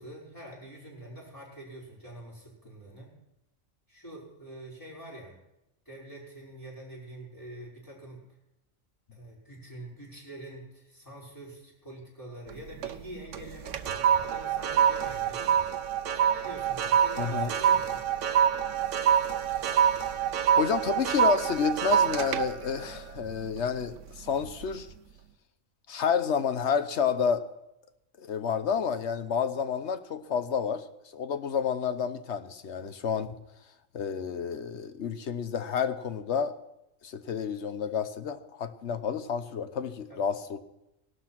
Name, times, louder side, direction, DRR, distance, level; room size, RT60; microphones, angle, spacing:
voice 1, 0.0-3.1 3.9-5.4 5.9-8.2 9.1-15.7 16.1-18.0 40.1-40.2, right 1 dB, 15° left, -5 dB, 5.8 m, -45 dB
sound 1, 12.5-13.0 13.3-23.9 24.3-24.6, right 9 dB, 70° right, 1.1 m, -26 dB
voice 2, 17.2-17.5 19.7-19.9 20.5-24.9 25.9-27.4 28.2-30.8 31.1-33.4 33.9-36.5 37.0-40.6, left 7 dB, 60° left, 11 dB, 1.2 m, -30 dB
18.0 x 12.0 x 6.0 m, 0.90 s
omnidirectional pair, 1.4 m